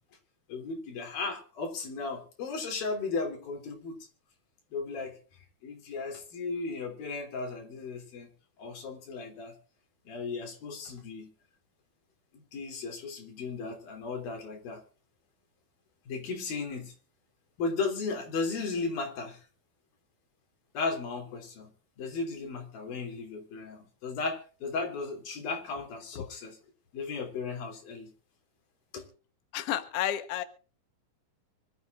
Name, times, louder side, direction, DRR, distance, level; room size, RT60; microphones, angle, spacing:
voice 1, 0.5-4.0 4.7-8.3 8.6-9.5 10.0-11.3 12.3-14.8 16.1-16.9 17.6-19.5 20.7-21.7 22.0-26.6 26.9-28.1 28.9-29.1, left 4 dB, 75° left, 4 dB, 5.1 m, -35 dB
voice 2, 29.5-30.4, left 11 dB, 60° left, 9 dB, 1.7 m, -31 dB
25.0 x 13.0 x 2.5 m, 0.37 s
omnidirectional pair, 4.2 m